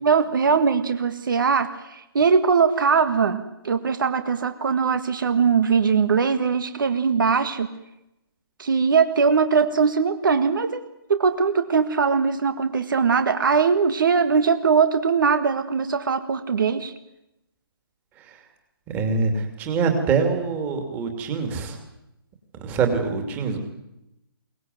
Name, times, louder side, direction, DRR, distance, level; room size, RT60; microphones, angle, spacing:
voice 1, 0.0-7.7 8.6-10.8 11.1-16.9, right 5 dB, 55° right, 10 dB, 1.7 m, -21 dB
voice 2, 18.9-21.8 22.5-23.6, right 5 dB, 15° right, 5 dB, 2.7 m, -24 dB
23.0 x 19.0 x 9.4 m, 0.88 s
hypercardioid pair, 165°, 13 cm